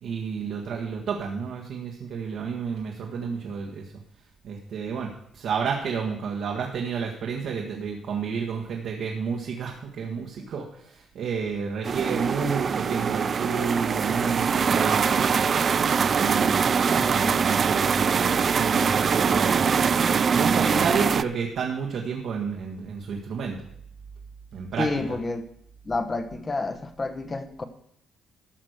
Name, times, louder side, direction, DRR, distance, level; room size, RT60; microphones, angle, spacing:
voice 1, 0.0-3.9 4.4-15.4 16.1-19.6 20.1-23.7 24.5-25.2, right 6 dB, 65° right, 0 dB, 1.7 m, -31 dB
sound 1, 11.8-21.2, right 6 dB, 40° right, 0.3 m, -23 dB
voice 2, 16.9-17.4 24.8-25.4 25.8-27.6, left 3 dB, 25° left, 10 dB, 1.1 m, -30 dB
13.5 x 6.2 x 6.6 m, 0.70 s
cardioid pair, 140°, 0 cm